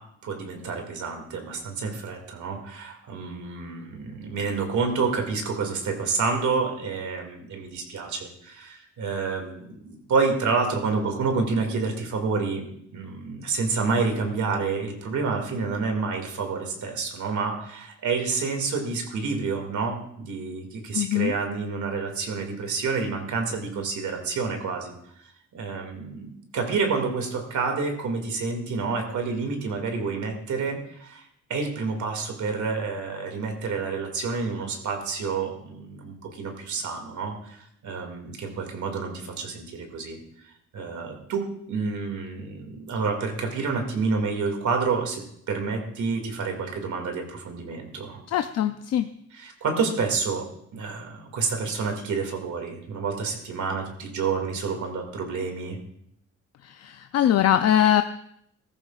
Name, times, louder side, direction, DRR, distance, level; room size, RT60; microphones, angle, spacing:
voice 1, 0.2-12.7 12.9-24.9 25.5-31.2 31.5-37.6 37.8-40.2 40.7-48.2 49.3-50.4 50.7-55.8, right 4 dB, 75° right, 3 dB, 2.3 m, -29 dB
voice 2, 20.9-21.3 48.3-49.1 56.6-58.0, left 11 dB, 60° left, 8 dB, 0.5 m, -22 dB
15.5 x 14.0 x 2.4 m, 0.72 s
wide cardioid pair, 155°, 30 cm